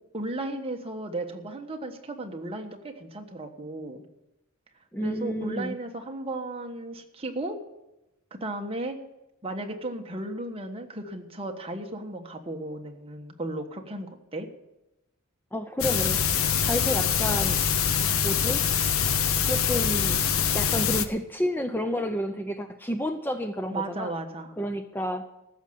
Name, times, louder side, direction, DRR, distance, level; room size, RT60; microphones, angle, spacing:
voice 1, 0.1-4.0 5.0-7.6 8.3-9.0 9.4-14.5 23.7-24.5, right 2 dB, 25° right, 3 dB, 1.3 m, -35 dB
voice 2, 4.9-5.8 15.5-17.6 18.2-18.6 19.4-24.1 24.6-25.2, equal, 10° left, 7 dB, 0.5 m, -30 dB
sound 1, 15.8-21.0, left 7 dB, 75° left, 0.8 m, -24 dB
14.5 x 6.5 x 9.3 m, 0.93 s
head